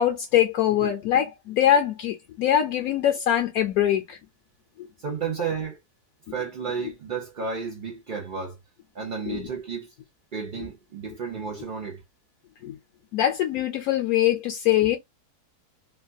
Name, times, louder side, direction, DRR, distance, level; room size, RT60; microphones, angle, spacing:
voice 1, 0.0-4.2 4.8-4.9 9.3-9.5 12.6-12.8 13.1-15.0, left 11 dB, 70° left, 1.0 m, -23 dB
voice 2, 5.0-5.8 6.3-8.6 8.9-9.9 10.3-12.0, right 6 dB, 80° right, 0.4 m, -32 dB
3.2 x 2.2 x 2.5 m
omnidirectional pair, 1.7 m